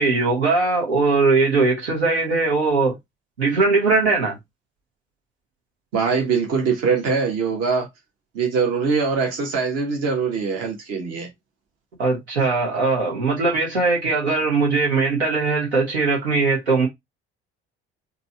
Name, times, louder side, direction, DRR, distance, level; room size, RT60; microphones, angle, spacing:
voice 1, 0.0-2.9 3.4-4.3 12.0-16.9, right 3 dB, 80° right, 1.4 m, -20 dB
voice 2, 5.9-7.9 8.3-11.3, right 5 dB, 50° right, 1.4 m, -22 dB
4.0 x 2.3 x 4.2 m
figure-of-eight pair, 50°, 33 cm